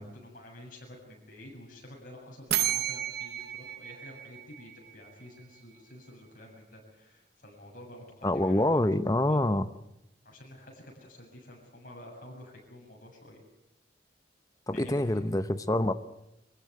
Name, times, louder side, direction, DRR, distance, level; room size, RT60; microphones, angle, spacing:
voice 1, 0.0-8.8 9.3-9.5 10.2-13.4 14.7-15.2, left 1 dB, 45° left, 0 dB, 7.6 m, -49 dB
sound 1, 2.5-5.3, right 11 dB, 60° right, 1.0 m, -33 dB
voice 2, 8.2-9.7 14.7-15.9, left 1 dB, 20° left, 11 dB, 0.8 m, -26 dB
24.0 x 15.5 x 9.6 m, 0.88 s
head